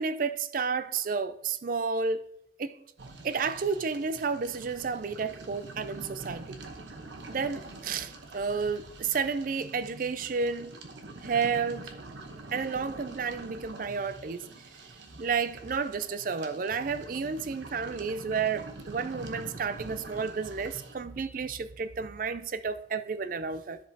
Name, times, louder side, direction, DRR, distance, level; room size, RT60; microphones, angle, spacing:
voice 1, 0.0-2.2 2.6-2.8 3.2-6.6 7.3-10.7 11.2-11.9 12.5-14.4 15.2-23.9, right 5 dB, 45° right, 0.4 m, -31 dB
sound 1, 3.0-20.9, right 2 dB, 75° right, 1.0 m, -46 dB
13.5 x 5.2 x 2.8 m
head